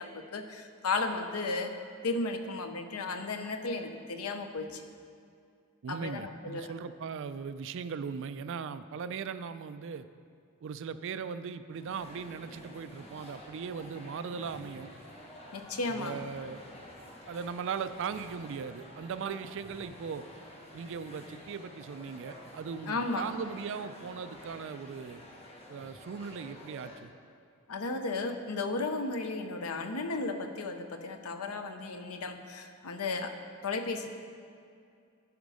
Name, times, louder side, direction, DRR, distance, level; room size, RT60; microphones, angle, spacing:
voice 1, 0.0-1.7 2.0-4.8 5.9-6.7 15.5-16.2 22.9-23.3 27.7-33.3 33.6-34.1, left 3 dB, 80° left, 7 dB, 0.7 m, -34 dB
voice 2, 5.8-10.1 10.6-14.9 15.9-16.6 17.3-20.3 20.7-25.2 25.7-27.1, right 6 dB, 60° right, 12 dB, 0.3 m, -39 dB
sound 1, 11.7-27.0, left 1 dB, 30° left, 1.2 m, -50 dB
12.0 x 5.2 x 4.9 m, 2.4 s
head